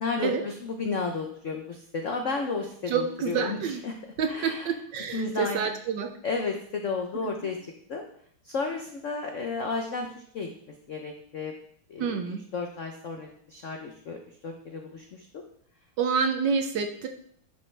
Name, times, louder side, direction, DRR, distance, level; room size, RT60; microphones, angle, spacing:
voice 1, 0.0-3.6 3.8-3.9 4.3-4.7 5.1-5.7 6.2-7.6 7.9-8.0 8.4-10.1 10.3-10.5 10.9-11.5 11.9-12.2 12.5-14.2 14.4-15.4, left 4 dB, 80° left, 3 dB, 0.6 m, -32 dB
voice 2, 2.9-3.8 4.2-6.1 7.4-7.5 12.0-12.4 16.0-17.1, right 6 dB, 70° right, 6 dB, 1.2 m, -28 dB
10.0 x 5.4 x 3.3 m, 0.64 s
omnidirectional pair, 2.4 m